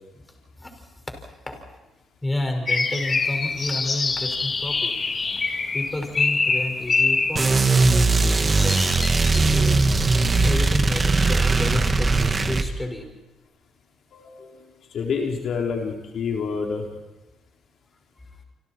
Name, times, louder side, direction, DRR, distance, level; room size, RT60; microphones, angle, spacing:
voice 1, 2.2-4.9 5.7-9.8 10.4-13.1, left 1 dB, 15° left, 4 dB, 5.4 m, -31 dB
sound 1, 2.7-7.5 8.3-9.4, left 4 dB, 35° left, 2.2 m, -25 dB
sound 2, 7.4-12.7, right 3 dB, 30° right, 1.7 m, -19 dB
voice 2, 14.1-14.6 14.9-16.9, left 5 dB, 65° left, 0 dB, 3.7 m, -28 dB
28.0 x 26.5 x 4.5 m, 1.0 s
cardioid pair, 90°, 0 cm